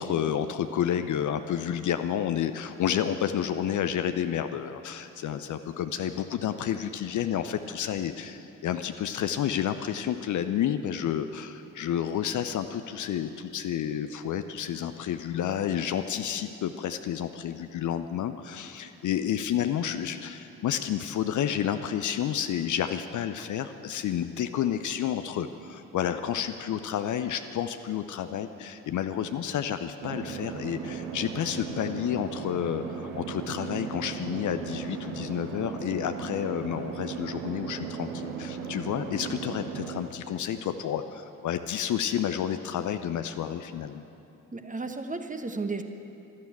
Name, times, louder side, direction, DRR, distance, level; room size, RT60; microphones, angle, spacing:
voice 1, 0.0-44.0, left 9 dB, 45° left, 9 dB, 0.7 m, -30 dB
sound 1, 30.0-40.0, right 6 dB, 70° right, 1.5 m, -37 dB
voice 2, 44.5-45.8, right 3 dB, 20° right, 6 dB, 1.3 m, -33 dB
14.0 x 12.5 x 8.3 m, 2.8 s
figure-of-eight pair, 45°, 43 cm